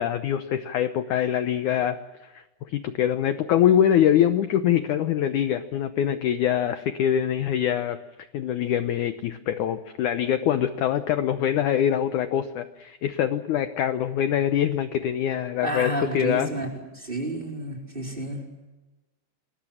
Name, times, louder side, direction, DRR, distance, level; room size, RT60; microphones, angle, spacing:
voice 1, 0.0-8.0 8.3-16.5, left 10 dB, 75° left, 9 dB, 1.9 m, -24 dB
voice 2, 15.6-16.7 17.0-18.4, right 1 dB, 15° right, 1 dB, 4.3 m, -30 dB
28.0 x 21.5 x 7.3 m, 1.1 s
omnidirectional pair, 4.7 m